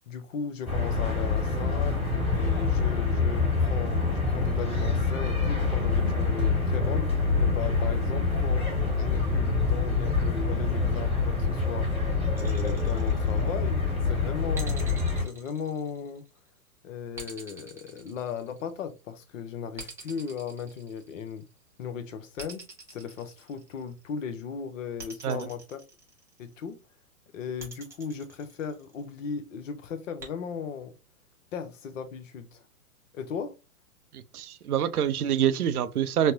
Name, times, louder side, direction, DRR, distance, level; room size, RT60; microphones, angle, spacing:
voice 1, 0.1-2.0 2.3-8.7 9.0-16.2 16.8-21.5 21.8-22.6 22.9-25.8 26.4-26.8 27.3-30.9 31.5-32.6 33.1-33.5, left 6 dB, 60° left, 0.7 m, -37 dB
sound 1, 0.7-15.2, left 4 dB, 15° left, 1.6 m, -26 dB
sound 2, 12.3-13.8 14.5-16.4 17.1-18.9 19.8-21.5 22.4-24.0 25.0-26.5 27.6-29.1 30.2-30.3, right 3 dB, 5° right, 0.6 m, -46 dB
voice 2, 34.1-36.3, right 9 dB, 80° right, 0.6 m, -26 dB
4.2 x 2.0 x 2.6 m
hypercardioid pair, 120°, 44 cm